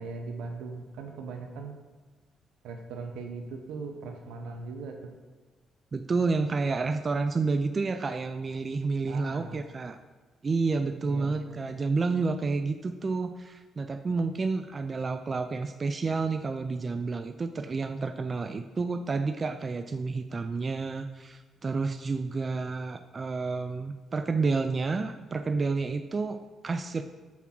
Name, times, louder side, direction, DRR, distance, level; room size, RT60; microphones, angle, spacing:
voice 1, 0.0-1.7 2.6-5.1 9.1-9.6 11.0-11.7, right 4 dB, 90° right, 4 dB, 0.8 m, -39 dB
voice 2, 5.9-10.0 10.4-27.0, right 4 dB, 35° right, 8 dB, 0.3 m, -30 dB
6.0 x 3.6 x 5.9 m, 1.3 s
cardioid pair, 90°, 0 cm